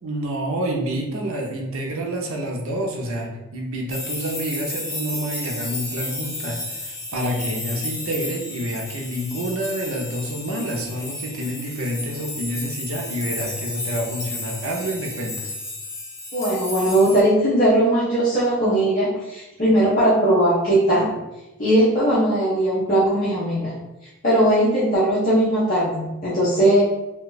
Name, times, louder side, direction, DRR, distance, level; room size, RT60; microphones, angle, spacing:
voice 1, 0.0-15.5, right 1 dB, 85° right, 0 dB, 0.6 m, -28 dB
sound 1, 3.9-17.2, left 2 dB, 15° left, 0.4 m, -33 dB
voice 2, 16.3-21.1 21.6-23.7 24.2-26.8, right 1 dB, 40° left, -9 dB, 0.7 m, -19 dB
2.7 x 2.3 x 3.8 m, 1.0 s
head